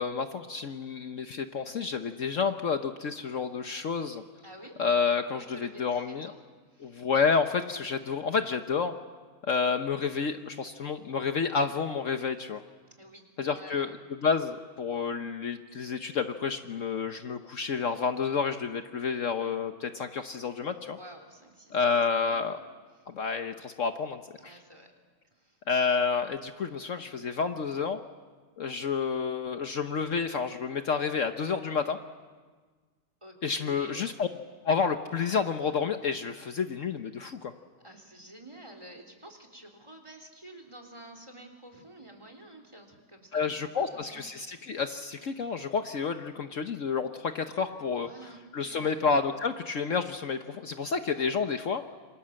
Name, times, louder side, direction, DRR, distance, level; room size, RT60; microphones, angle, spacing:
voice 1, 0.0-4.2 4.8-6.3 6.8-8.9 9.5-12.6 13.4-13.9 14.2-21.0 21.7-22.6 23.1-24.5 25.7-28.0 28.6-32.0 33.4-34.3 34.6-37.5 43.3-48.1 48.5-51.8, left 5 dB, 60° left, 7 dB, 1.3 m, -30 dB
voice 2, 4.4-4.8 5.4-6.4 6.7-7.1 13.0-13.9 20.9-22.5 23.0-23.1 24.4-24.9 25.3-25.6 33.2-34.0 37.8-44.8 48.0-49.0 50.9-51.3, right 1 dB, 20° right, 4 dB, 3.5 m, -50 dB
27.5 x 26.5 x 7.7 m, 1.4 s
omnidirectional pair, 1.6 m